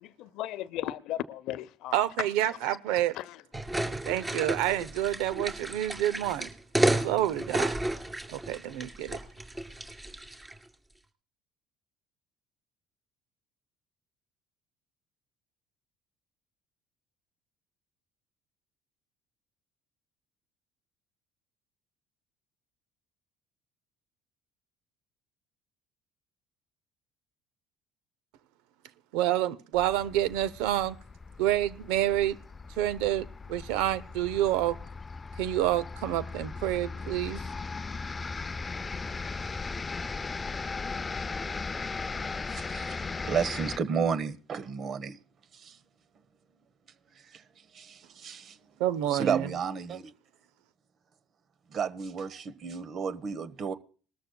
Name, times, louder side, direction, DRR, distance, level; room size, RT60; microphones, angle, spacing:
voice 1, 0.0-2.0 2.6-2.8 3.1-3.4, left 14 dB, 70° left, 0.8 m, -36 dB
voice 2, 1.9-3.2 4.1-6.5 7.0-7.8 8.3-9.2 29.1-31.0 31.4-32.4 32.8-34.8 35.4-37.4 48.8-49.5, right 13 dB, 75° right, 0.7 m, -28 dB
sound 1, 3.5-10.6, right 1 dB, 15° right, 2.3 m, -32 dB
sound 2, 29.7-43.8, left 4 dB, 25° left, 0.5 m, -37 dB
voice 3, 42.5-45.2 45.5-45.8 47.3-47.4 47.7-48.6 49.1-50.1 51.7-53.7, right 6 dB, 50° right, 1.2 m, -32 dB
20.0 x 13.5 x 2.3 m
hypercardioid pair, 70°, 0 cm